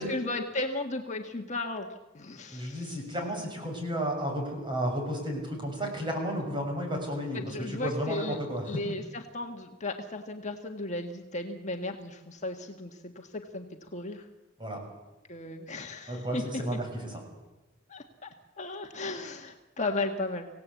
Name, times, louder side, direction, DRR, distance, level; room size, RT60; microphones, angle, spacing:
voice 1, 0.0-1.9 2.1-3.0 7.3-8.4 8.6-13.6 13.9-14.2 15.3-16.4 17.9-20.5, left 2 dB, 35° left, 3 dB, 1.6 m, -35 dB
voice 2, 2.5-8.6 14.6-14.8 16.1-17.2, equal, 25° right, 2 dB, 6.6 m, -32 dB
26.0 x 17.0 x 8.3 m, 1.1 s
head